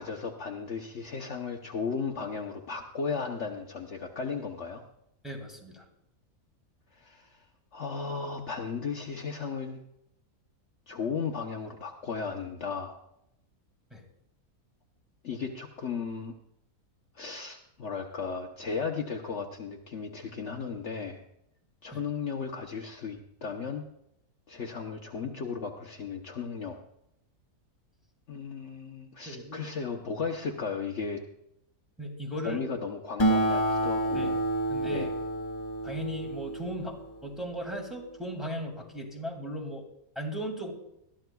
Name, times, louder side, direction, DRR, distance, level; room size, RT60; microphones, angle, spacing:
voice 1, 0.0-4.8 6.9-7.4 7.7-9.8 10.9-13.0 15.2-16.3 17.1-21.2 21.8-23.8 24.5-26.8 28.3-31.2 32.4-34.4 34.9-35.1, left 5 dB, 55° left, 2 dB, 1.1 m, -35 dB
voice 2, 5.2-5.8 13.9-14.0 21.9-22.0 29.3-29.6 32.0-32.6 34.1-34.3 34.7-35.1 35.8-39.8 40.2-40.7, equal, ahead, 0 dB, 2.1 m, -37 dB
Acoustic guitar, 33.2-38.0, right 1 dB, 20° left, 0.9 m, -29 dB
20.5 x 13.0 x 2.3 m, 0.80 s
omnidirectional pair, 1.6 m